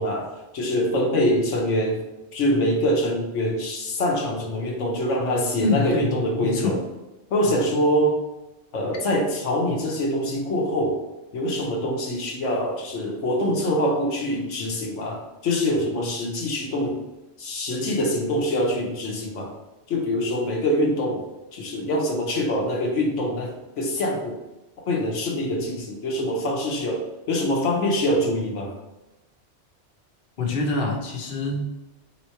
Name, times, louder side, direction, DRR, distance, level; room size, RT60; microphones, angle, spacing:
voice 1, 0.0-2.0 2.3-6.8 7.3-8.2 8.7-11.0 11.3-17.0 17.4-19.5 19.9-24.4 24.9-28.7, equal, 80° left, 0 dB, 1.2 m, -24 dB
voice 2, 5.6-6.1 6.4-6.8 30.4-31.7, left 3 dB, 55° left, 0 dB, 1.0 m, -25 dB
3.8 x 3.2 x 4.3 m, 1.0 s
omnidirectional pair, 1.2 m